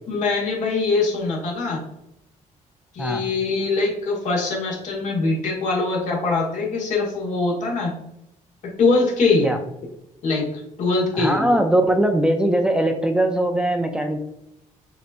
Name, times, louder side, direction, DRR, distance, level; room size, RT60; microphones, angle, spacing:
voice 1, 0.1-1.8 2.9-7.9 8.6-9.5 10.2-11.6, left 3 dB, 65° left, -3 dB, 1.6 m, -22 dB
voice 2, 11.1-14.2, right 1 dB, 5° right, 4 dB, 0.4 m, -20 dB
6.6 x 2.8 x 2.5 m, 0.81 s
cardioid pair, 115°, 14 cm